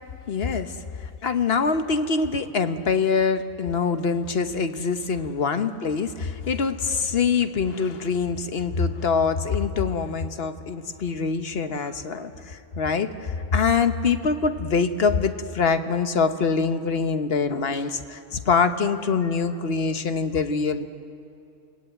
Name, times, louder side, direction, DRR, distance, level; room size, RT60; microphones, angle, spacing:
voice 1, 0.3-20.9, left 5 dB, 55° left, 9 dB, 1.2 m, -24 dB
28.5 x 18.5 x 9.0 m, 2.6 s
omnidirectional pair, 1.3 m